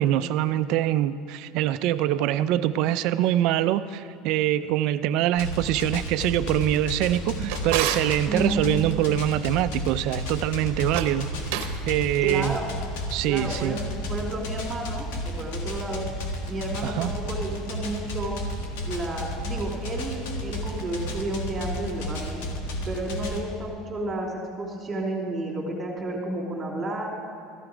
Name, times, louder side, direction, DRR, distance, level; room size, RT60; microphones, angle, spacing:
voice 1, 0.0-11.3 11.9-12.6 13.1-13.8 16.8-17.1, right 12 dB, 65° right, 13 dB, 0.4 m, -24 dB
sound 1, 5.3-23.4, left 1 dB, 85° left, 1.6 m, -33 dB
Drawer open or close, 7.0-8.2 10.8-11.8, right 10 dB, 80° right, 0.9 m, -31 dB
voice 2, 8.3-8.6 12.2-12.7 13.3-16.0 16.5-18.4 18.8-22.5 22.8-27.1, right 1 dB, 20° right, -6 dB, 3.0 m, -31 dB
14.5 x 11.0 x 5.0 m, 2.4 s
supercardioid pair, 125°, 0 cm